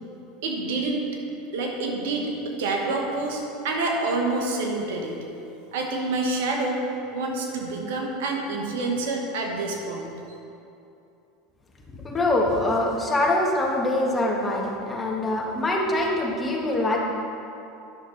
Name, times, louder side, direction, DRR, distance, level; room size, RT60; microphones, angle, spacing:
voice 1, 0.4-1.0 1.5-5.1 5.7-6.8 7.1-10.1, right 2 dB, 75° right, 1 dB, 1.4 m, -27 dB
voice 2, 12.0-17.0, left 1 dB, 20° left, -1 dB, 1.5 m, -24 dB
10.5 x 6.3 x 4.0 m, 2.7 s
hypercardioid pair, 95°, 0 cm